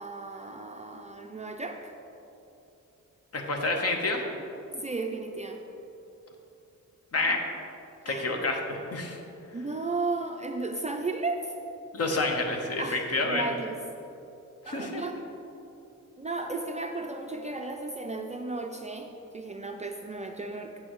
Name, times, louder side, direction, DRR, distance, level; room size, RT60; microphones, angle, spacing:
voice 1, 0.0-1.9 4.7-5.6 8.1-8.3 9.5-11.5 12.8-13.8 14.6-15.1 16.2-20.9, right 3 dB, 20° right, 3 dB, 0.4 m, -34 dB
voice 2, 3.3-4.2 7.1-7.4 8.0-9.2 11.9-13.5 14.7-15.0, left 2 dB, 50° left, 3 dB, 1.0 m, -28 dB
8.3 x 7.7 x 3.1 m, 2.9 s
wide cardioid pair, 125°, 32 cm